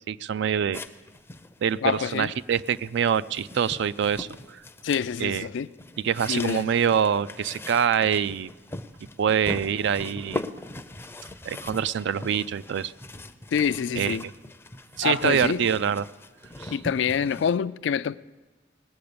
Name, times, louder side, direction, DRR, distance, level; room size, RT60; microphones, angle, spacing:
voice 1, 0.1-0.8 1.6-4.6 5.2-5.5 6.0-8.5 9.2-10.4 11.5-12.9 14.0-14.3 15.0-16.0 16.6-16.7, right 8 dB, 65° right, 0.3 m, -25 dB
sound 1, 0.7-17.6, left 2 dB, 15° left, 0.5 m, -41 dB
voice 2, 1.8-2.3 4.8-5.7 6.3-6.7 13.5-14.3 15.0-15.6 16.7-18.2, left 7 dB, 65° left, 0.3 m, -26 dB
19.5 x 8.6 x 6.8 m
head